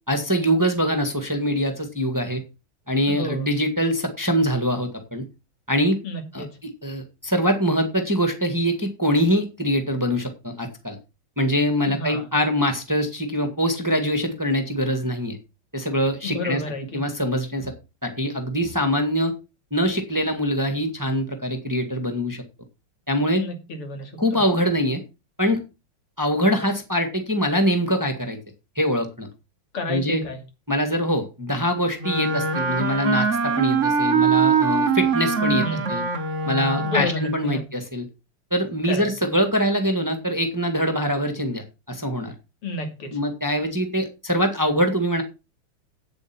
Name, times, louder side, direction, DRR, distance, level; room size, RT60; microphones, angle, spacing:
voice 1, 0.1-2.4 2.9-5.2 5.7-6.0 6.3-6.5 6.8-11.0 11.4-15.4 15.7-16.6 16.9-17.7 18.0-19.3 19.7-22.4 23.1-23.4 24.2-25.0 25.4-25.6 26.2-28.4 28.7-29.3 29.9-30.2 30.7-36.0 36.4-38.1 38.5-42.3 43.1-45.2, equal, 10° right, 1.6 m, -23 dB
voice 2, 3.1-3.5 6.0-6.6 11.9-12.3 16.2-17.0 23.4-24.4 29.7-30.4 35.5-35.9 36.8-37.6 38.8-39.1 42.6-43.2, left 2 dB, 85° left, 3.6 m, -30 dB
Wind instrument woodwind instrument, 32.0-37.3, right 5 dB, 40° right, 1.2 m, -22 dB
9.0 x 7.9 x 6.0 m
omnidirectional pair, 2.4 m